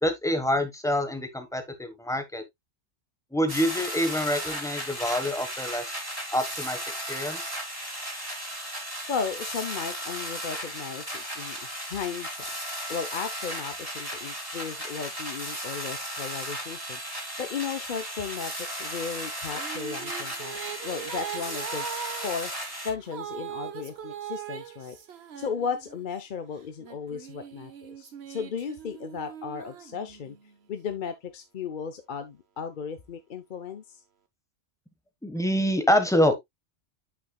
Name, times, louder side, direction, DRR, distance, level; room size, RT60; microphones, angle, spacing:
voice 1, 0.0-2.4 3.3-5.9 6.3-6.8 7.1-7.4 35.2-36.3, equal, 5° left, 1.1 m, -26 dB
sound 1, 3.5-22.9, equal, 20° right, 3.4 m, -35 dB
voice 2, 9.1-11.6 11.9-12.5 12.9-17.0 17.4-21.9 22.2-22.5 22.8-25.0 25.4-30.4 30.7-34.0, left 6 dB, 50° left, 0.8 m, -35 dB
Female singing, 19.2-26.1 26.8-30.6, right 9 dB, 65° right, 1.2 m, -40 dB
8.7 x 6.0 x 2.2 m
omnidirectional pair, 1.2 m